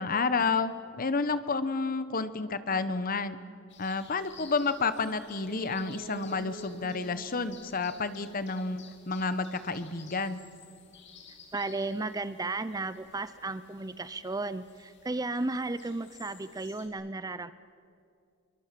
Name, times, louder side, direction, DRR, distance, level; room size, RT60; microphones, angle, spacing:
voice 1, 0.0-3.4 3.8-10.4, left 4 dB, 45° left, 13 dB, 1.0 m, -30 dB
sound 1, 3.7-16.9, left 6 dB, 60° left, 3.1 m, -55 dB
sound 2, 5.2-8.9 9.2-9.3, right 1 dB, 50° right, 1.2 m, -47 dB
voice 2, 11.5-17.5, right 2 dB, 15° right, 14 dB, 0.5 m, -34 dB
25.5 x 23.0 x 7.6 m, 2.3 s
head